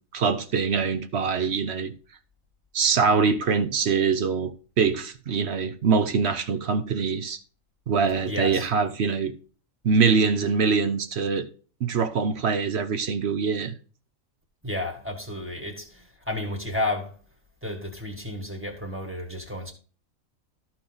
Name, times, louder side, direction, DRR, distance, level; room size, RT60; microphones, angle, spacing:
voice 1, 0.1-1.9 2.7-7.4 7.9-9.3 9.8-11.5 11.8-13.7, right 5 dB, 55° right, 1.0 m, -24 dB
voice 2, 8.3-8.7 14.6-17.1 17.6-19.7, left 1 dB, 10° right, 1.7 m, -32 dB
13.5 x 4.7 x 3.8 m
omnidirectional pair, 1.4 m